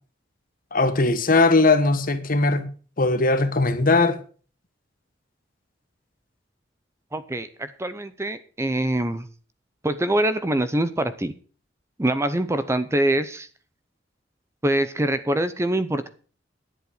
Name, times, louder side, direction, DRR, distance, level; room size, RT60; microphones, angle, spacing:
voice 1, 0.7-2.7 3.0-4.2, left 3 dB, 50° left, 1.3 m, -19 dB
voice 2, 7.1-9.3 9.8-11.3 12.0-13.5 14.6-16.1, right 1 dB, 15° right, 0.7 m, -24 dB
11.0 x 7.9 x 6.5 m
head